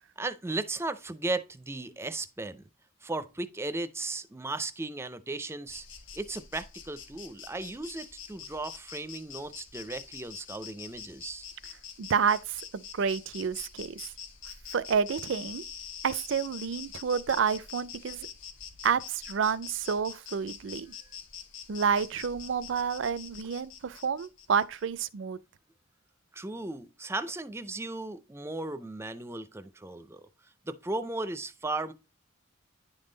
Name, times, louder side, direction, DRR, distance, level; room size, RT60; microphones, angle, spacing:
voice 1, 0.2-2.6 3.0-5.9 6.1-11.5 26.3-30.3 30.6-31.9, right 2 dB, 15° right, 0.5 m, -36 dB
Insect, 5.7-24.9, left 7 dB, 75° left, 1.3 m, -45 dB
voice 2, 12.0-14.1 14.7-15.6 16.0-18.3 18.8-20.9 21.7-25.4, right 6 dB, 65° right, 0.4 m, -29 dB
10.0 x 3.7 x 3.8 m
head